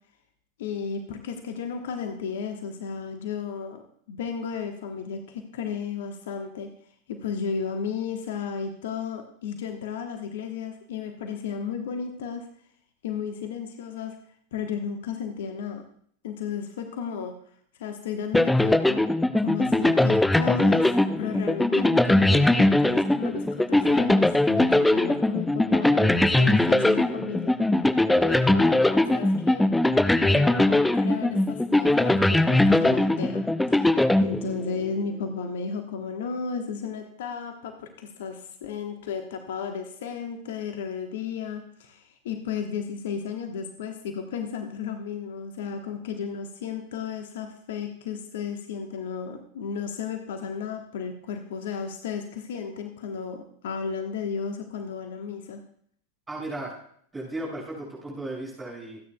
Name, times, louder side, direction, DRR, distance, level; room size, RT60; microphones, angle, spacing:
voice 1, 0.6-3.8 4.1-6.7 7.1-12.5 13.0-14.2 14.5-15.8 16.2-17.4 17.8-19.0 19.4-27.6 28.1-29.7 30.2-33.9 34.2-55.6, left 6 dB, 55° left, 6 dB, 1.1 m, -33 dB
sound 1, 18.3-34.9, left 1 dB, 5° left, 0.5 m, -21 dB
voice 2, 56.3-56.8 57.1-59.0, right 2 dB, 10° right, -4 dB, 6.0 m, -35 dB
26.0 x 9.4 x 2.3 m, 0.63 s
figure-of-eight pair, 90°, 0 cm